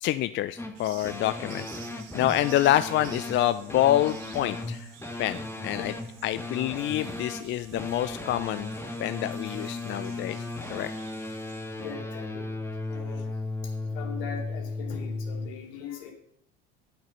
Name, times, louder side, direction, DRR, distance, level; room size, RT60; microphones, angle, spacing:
voice 1, 0.0-1.7 2.1-4.9 5.2-5.9 6.2-8.7 9.0-10.4 10.7-10.9, left 13 dB, 40° left, 13 dB, 0.5 m, -27 dB
sound 1, 0.6-15.5, left 2 dB, 10° left, 1.6 m, -36 dB
sound 2, 0.7-11.9, right 9 dB, 60° right, 1.7 m, -51 dB
voice 2, 11.8-12.6 12.9-13.3 13.6-16.1, left 7 dB, 70° left, 3 dB, 2.7 m, -41 dB
9.2 x 8.8 x 5.4 m, 0.68 s
hypercardioid pair, 80°, 29 cm